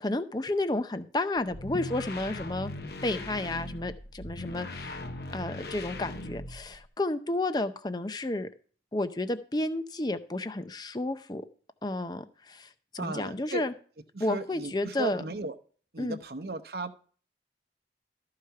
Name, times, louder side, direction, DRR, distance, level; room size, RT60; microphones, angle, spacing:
voice 1, 0.0-2.7 3.0-5.0 5.3-8.5 8.9-11.4 11.8-13.7 14.2-15.2 16.0-16.2, left 2 dB, 25° left, 11 dB, 0.6 m, -31 dB
sound 1, 1.4-6.9, left 1 dB, 60° left, 0.9 m, -39 dB
voice 2, 13.0-13.7 14.1-15.6 15.9-16.9, right 3 dB, 60° right, 11 dB, 0.8 m, -36 dB
13.0 x 4.9 x 5.7 m, 0.43 s
head